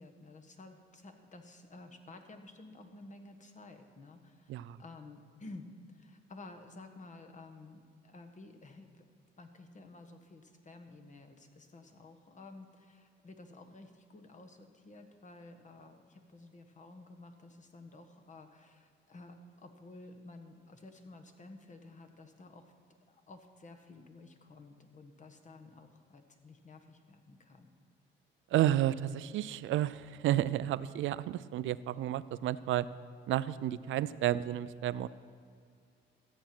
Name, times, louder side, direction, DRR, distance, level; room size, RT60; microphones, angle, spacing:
voice 1, 0.0-9.1 9.4-27.7, left 2 dB, 40° left, 5 dB, 1.4 m, -53 dB
voice 2, 28.5-32.9 33.3-35.1, right 13 dB, 75° right, 16 dB, 0.5 m, -31 dB
14.0 x 8.6 x 6.0 m, 2.2 s
cardioid pair, 90°, 20 cm